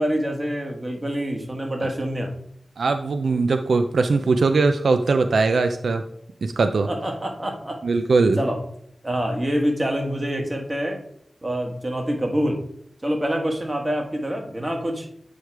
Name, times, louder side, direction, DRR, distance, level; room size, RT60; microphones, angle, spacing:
voice 1, 0.0-2.3 6.9-7.8 8.4-8.6 9.0-11.0 11.4-12.6 13.0-15.1, equal, 30° right, 2 dB, 1.4 m, -26 dB
voice 2, 2.8-6.0 6.4-6.9 7.8-8.4, right 3 dB, 90° right, 8 dB, 0.4 m, -20 dB
8.2 x 3.1 x 4.7 m, 0.70 s
cardioid pair, 50°, 0 cm